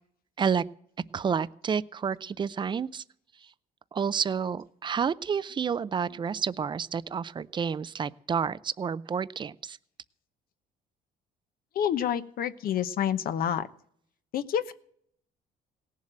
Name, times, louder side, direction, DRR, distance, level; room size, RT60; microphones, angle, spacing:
voice 1, 1.1-3.0 3.9-9.8, right 6 dB, 25° right, 18 dB, 0.5 m, -30 dB
voice 2, 11.7-13.6 14.3-14.7, left 9 dB, 60° left, 12 dB, 1.0 m, -28 dB
17.5 x 7.4 x 8.8 m, 0.65 s
cardioid pair, 110°, 17 cm